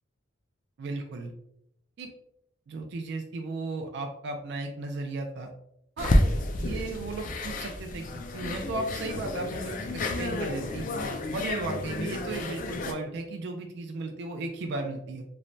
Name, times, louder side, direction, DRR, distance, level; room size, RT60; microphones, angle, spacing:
voice 1, 0.8-1.3 2.0-2.1 2.7-5.5 6.0-6.1 6.6-8.1 8.3-10.9 11.3-15.2, right 2 dB, 60° right, 3 dB, 0.3 m, -35 dB
sound 1, 6.0-12.9, left 1 dB, 40° left, 0.3 m, -30 dB
3.1 x 2.1 x 2.5 m, 0.77 s
head